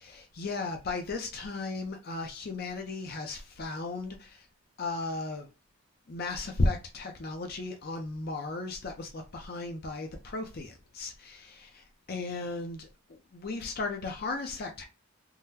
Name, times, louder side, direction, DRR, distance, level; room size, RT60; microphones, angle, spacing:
voice 1, 0.0-4.5 4.8-5.5 6.1-14.8, left 2 dB, 45° left, 0.5 m, -35 dB
3.7 x 2.0 x 2.7 m
head